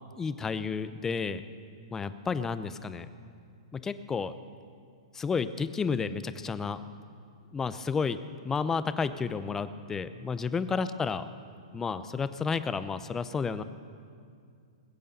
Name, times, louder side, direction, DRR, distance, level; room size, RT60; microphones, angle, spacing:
voice 1, 0.2-1.4 1.9-3.1 3.7-4.3 5.1-6.8 7.5-8.2 8.4-11.2 11.7-13.6, left 5 dB, 15° left, 13 dB, 0.7 m, -31 dB
21.0 x 8.8 x 6.8 m, 2.4 s
hypercardioid pair, 115°, 3 cm